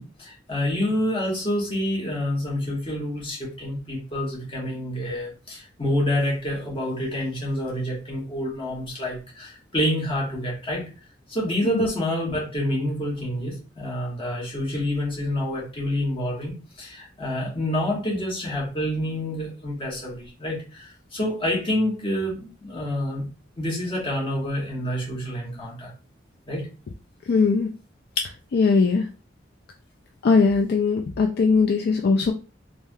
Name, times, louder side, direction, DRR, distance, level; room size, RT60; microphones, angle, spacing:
voice 1, 0.0-10.9 11.3-23.3 23.6-25.9 26.5-26.7, left 1 dB, 30° left, -4 dB, 1.2 m, -27 dB
voice 2, 27.3-27.7 28.5-29.0 30.2-32.3, left 4 dB, 60° left, 3 dB, 0.3 m, -20 dB
3.3 x 2.6 x 2.2 m, 0.33 s
head